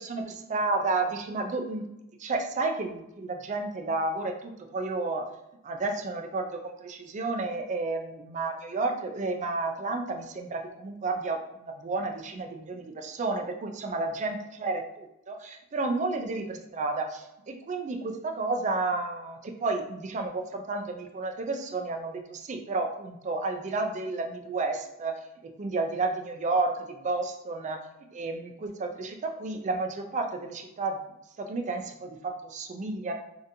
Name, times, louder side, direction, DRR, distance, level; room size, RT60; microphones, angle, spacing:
voice 1, 0.0-1.8 2.2-5.3 5.6-25.1 25.4-27.8 28.1-31.0 31.4-33.1, right 3 dB, 35° right, 4 dB, 0.4 m, -31 dB
3.8 x 2.6 x 2.6 m, 0.89 s
head